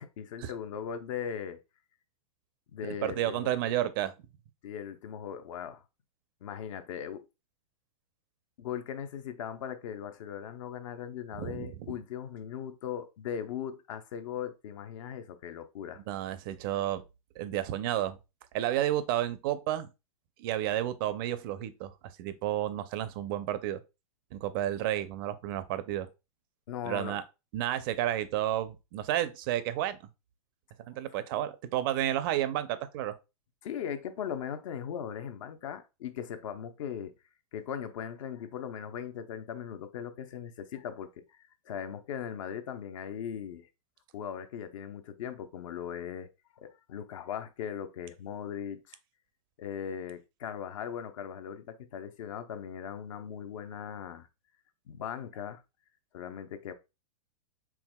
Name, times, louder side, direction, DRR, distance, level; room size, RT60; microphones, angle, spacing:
voice 1, 0.0-1.6 2.7-3.5 4.6-5.8 6.4-7.2 8.6-16.0 26.7-27.2 33.6-37.1 37.5-43.7 44.1-46.3 46.6-49.0 49.6-54.3 54.9-55.6 56.1-56.7, left 8 dB, 60° left, 0.7 m, -39 dB
voice 2, 2.9-4.1 11.4-11.9 16.1-17.0 17.4-18.2 18.5-19.9 20.4-21.9 22.2-23.8 24.3-26.1 26.8-27.2 27.5-30.0 30.9-33.1, right 12 dB, 40° right, 0.4 m, -31 dB
4.7 x 3.5 x 2.2 m
hypercardioid pair, 150°, 19 cm